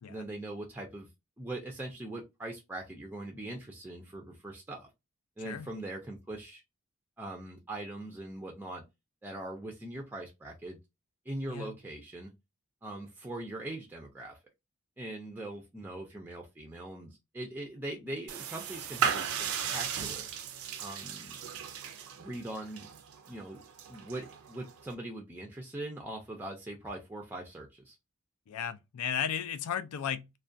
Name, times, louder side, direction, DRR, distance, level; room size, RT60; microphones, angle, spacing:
voice 1, 0.1-1.1 1.4-4.9 5.4-6.6 7.2-8.8 9.2-10.8 11.3-12.3 12.8-14.4 15.0-19.3 19.6-20.3 20.8-21.4 22.2-22.9 23.3-28.0, right 1 dB, 10° right, 0.4 m, -41 dB
sound 1, 18.3-24.9, right 7 dB, 70° right, 0.4 m, -36 dB
voice 2, 28.5-30.4, left 8 dB, 85° left, 0.4 m, -35 dB
2.3 x 2.2 x 2.5 m
head